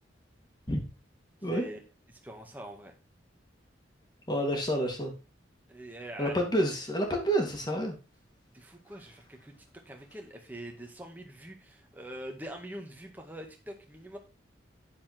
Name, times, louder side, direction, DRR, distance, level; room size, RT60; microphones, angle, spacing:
voice 1, 1.4-1.8 2.1-2.9 5.7-6.4 8.5-9.5 9.9-14.2, right 1 dB, 10° right, 2 dB, 1.8 m, -44 dB
voice 2, 4.3-5.1 6.2-8.0, equal, 20° left, 3 dB, 2.4 m, -29 dB
9.2 x 7.2 x 4.5 m, 0.30 s
head